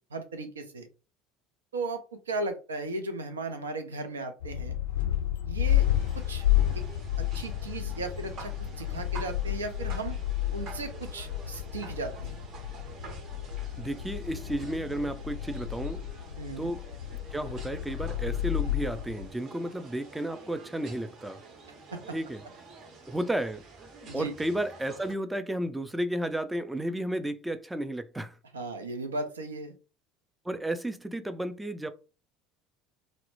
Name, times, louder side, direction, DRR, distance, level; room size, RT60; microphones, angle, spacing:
voice 1, 0.1-0.9 1.7-4.8 5.4-5.9 6.1-6.4 6.7-6.8 7.2-10.2 10.5-12.4 16.4-16.7 21.9-22.2 24.1-24.3 28.5-29.7, right 3 dB, 85° right, 0.4 m, -36 dB
sound 1, 4.4-19.3, left 12 dB, 75° left, 0.3 m, -31 dB
sound 2, 5.7-25.1, right 3 dB, 50° right, 0.7 m, -48 dB
voice 2, 13.8-16.0 16.6-16.8 17.3-21.4 22.1-22.4 23.1-23.6 24.1-28.4 30.4-31.9, right 1 dB, 10° right, 0.3 m, -32 dB
2.0 x 2.0 x 3.0 m
hypercardioid pair, 70°, 0 cm